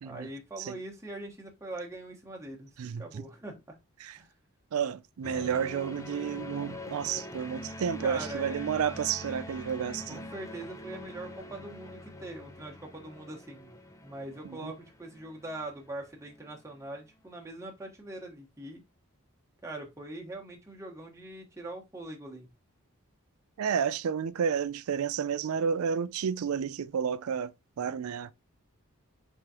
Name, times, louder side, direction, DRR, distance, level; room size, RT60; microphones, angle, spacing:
voice 1, 0.0-3.7 4.2-4.3 8.0-8.6 10.1-13.7 14.0-18.8 19.6-22.5, right 2 dB, 15° right, 1.2 m, -42 dB
voice 2, 2.8-3.3 4.0-4.2 4.7-10.3 14.4-14.7 23.6-27.5 27.8-28.3, right 7 dB, 75° right, 0.4 m, -31 dB
sound 1, 5.2-16.6, left 1 dB, 15° left, 0.6 m, -44 dB
4.9 x 3.6 x 2.9 m
head